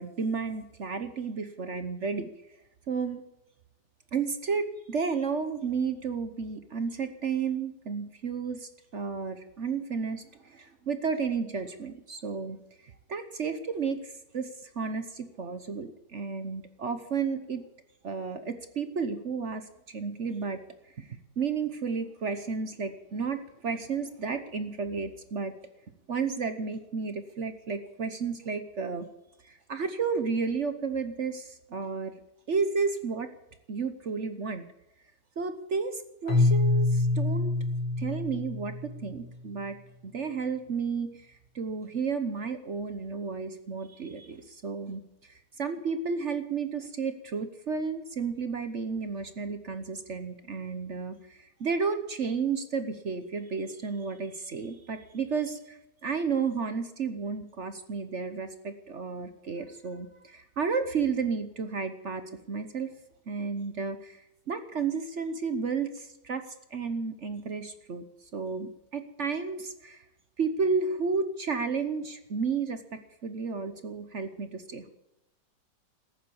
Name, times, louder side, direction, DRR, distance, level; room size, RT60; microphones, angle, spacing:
voice 1, 0.0-2.3 2.9-3.2 4.1-12.6 12.8-17.6 18.0-20.6 21.0-21.1 21.4-25.5 26.1-29.1 29.4-32.1 32.5-33.3 33.7-34.7 35.4-37.5 38.0-39.8 40.0-62.9 63.3-68.0 68.3-70.0 70.4-74.9, right 5 dB, 50° right, 9 dB, 0.9 m, -32 dB
Keyboard (musical), 36.3-39.2, left 2 dB, 85° left, 3.2 m, -26 dB
14.5 x 11.0 x 8.6 m, 0.89 s
omnidirectional pair, 2.4 m